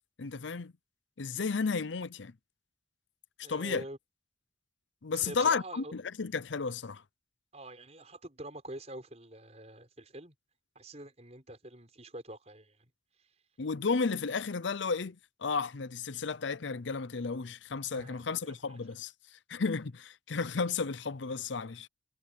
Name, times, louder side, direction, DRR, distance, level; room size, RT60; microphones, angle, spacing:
voice 1, 0.2-0.7 1.2-2.3 3.5-3.8 5.0-7.0 13.6-21.9, left 5 dB, 75° left, 0.7 m, -33 dB
voice 2, 3.4-4.0 5.1-5.9 7.5-10.3 10.7-12.9 17.9-18.8, right 1 dB, 35° right, 6.3 m, -46 dB
head